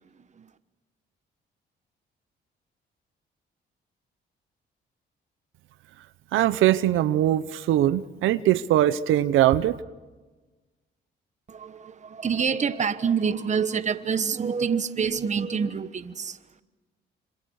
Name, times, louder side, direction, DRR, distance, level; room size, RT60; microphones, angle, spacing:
voice 1, 6.3-9.8, right 13 dB, 85° right, 0.8 m, -21 dB
voice 2, 11.5-16.4, right 6 dB, 35° right, 1.3 m, -27 dB
27.5 x 26.5 x 6.5 m
cardioid pair, 90°, 20 cm